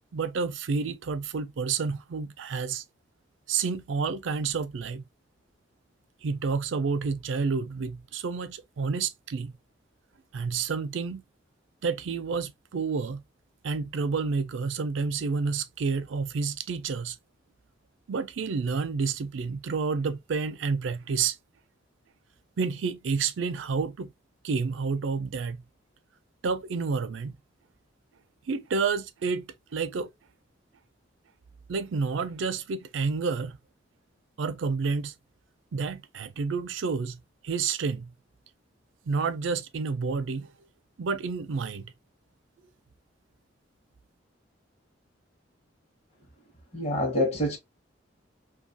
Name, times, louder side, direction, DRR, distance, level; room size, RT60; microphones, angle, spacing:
voice 1, 0.1-2.8 3.5-5.0 6.2-9.5 10.3-11.2 11.8-13.2 13.6-17.2 18.1-21.4 22.6-24.1 24.4-25.6 26.4-27.4 28.5-30.1 31.7-33.6 34.4-35.1 35.7-38.1 39.1-40.5 41.0-41.9, right 5 dB, 75° right, 0.4 m, -29 dB
voice 2, 46.7-47.6, left 1 dB, 35° left, 0.8 m, -26 dB
2.7 x 2.3 x 2.7 m
head